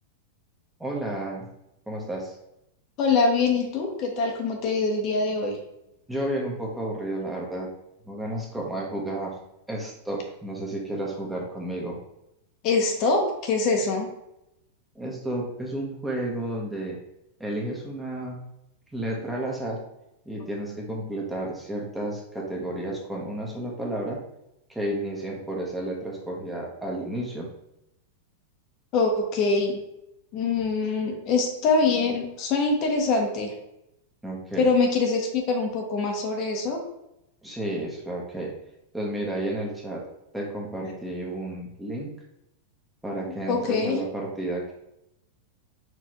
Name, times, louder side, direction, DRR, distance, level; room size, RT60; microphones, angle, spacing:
voice 1, 0.8-1.5 1.9-2.3 6.1-7.7 8.1-9.4 9.7-12.0 14.9-17.0 17.4-18.4 18.9-19.8 20.3-24.2 24.7-27.5 34.2-34.7 37.4-38.5 38.9-40.1 40.3-42.1 43.0-44.7, right 1 dB, 5° right, -2 dB, 1.0 m, -32 dB
voice 2, 3.0-5.6 12.6-14.1 28.9-29.8 30.3-33.5 34.6-36.8 40.8-40.9 43.5-44.0, left 3 dB, 45° left, 2 dB, 0.9 m, -24 dB
4.5 x 3.2 x 3.0 m, 0.85 s
hypercardioid pair, 120°, 0 cm